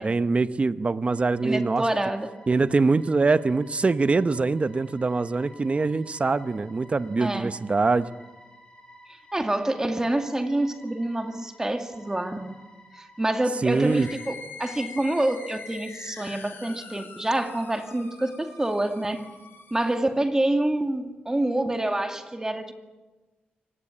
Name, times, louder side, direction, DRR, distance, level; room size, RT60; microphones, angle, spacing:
voice 1, 0.0-1.8 2.5-8.1 13.6-14.1, right 3 dB, 35° right, 13 dB, 0.9 m, -23 dB
sound 1, 1.0-14.3, equal, 20° left, 6.8 m, -53 dB
voice 2, 1.4-2.3 7.2-7.5 9.3-12.6 13.0-19.2 19.7-22.7, right 1 dB, 15° right, 6 dB, 2.3 m, -27 dB
sound 2, 13.6-20.1, left 4 dB, 70° left, 8.0 m, -44 dB
24.0 x 19.0 x 8.7 m, 1.2 s
cardioid pair, 80°, 4 cm